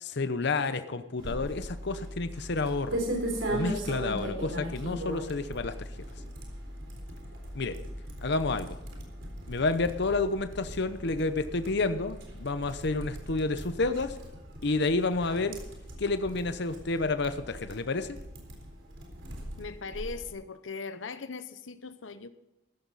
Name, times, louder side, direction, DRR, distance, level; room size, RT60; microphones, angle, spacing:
voice 1, 0.0-3.0 3.5-5.9 7.5-7.8 8.2-8.8 9.5-14.1 14.6-15.6 16.0-18.1, left 3 dB, 60° left, 10 dB, 0.8 m, -30 dB
sound 1, 1.2-20.3, equal, 75° right, 3.9 m, -39 dB
voice 2, 19.6-22.3, left 4 dB, 90° left, 12 dB, 0.9 m, -39 dB
14.5 x 13.5 x 4.1 m, 0.95 s
head